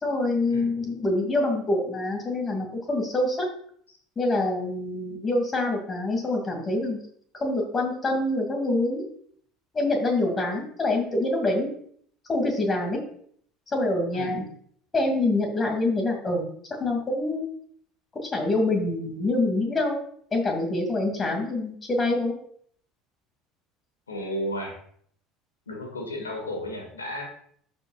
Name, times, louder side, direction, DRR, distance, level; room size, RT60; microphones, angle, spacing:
voice 1, 0.0-3.5 4.2-7.0 7.4-9.1 9.7-11.7 12.3-13.0 13.7-14.4 14.9-16.4 16.8-17.4 18.1-20.0 20.3-22.3, left 2 dB, 25° left, 2 dB, 2.5 m, -25 dB
voice 2, 24.1-24.8 25.7-27.2, left 1 dB, 85° left, 1 dB, 2.1 m, -33 dB
13.5 x 5.2 x 2.4 m, 0.62 s
figure-of-eight pair, 65°, 0 cm